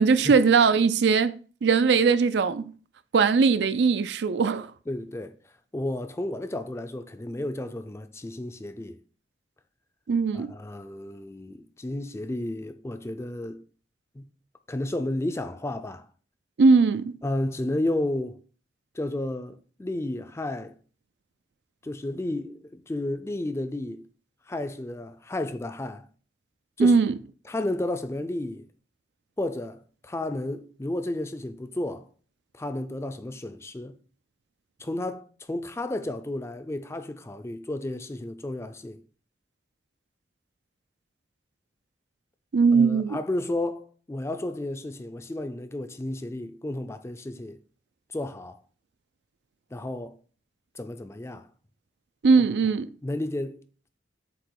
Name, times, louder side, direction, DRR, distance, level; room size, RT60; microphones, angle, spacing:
voice 1, 0.0-1.3 1.6-2.7 3.1-4.7 10.1-10.5 16.6-17.1 26.8-27.1 42.5-43.2 52.2-52.9, right 5 dB, 75° right, 0.4 m, -20 dB
voice 2, 4.9-5.3 5.7-9.0 10.3-13.6 14.1-14.2 14.7-16.1 17.2-18.4 18.9-20.7 21.8-24.0 24.5-26.1 26.8-27.0 27.5-28.7 29.4-32.1 32.5-34.0 34.8-39.0 42.7-47.6 48.1-48.6 49.7-50.2 50.7-51.5 53.0-53.6, left 1 dB, 15° left, 0.4 m, -32 dB
7.7 x 3.0 x 4.6 m
head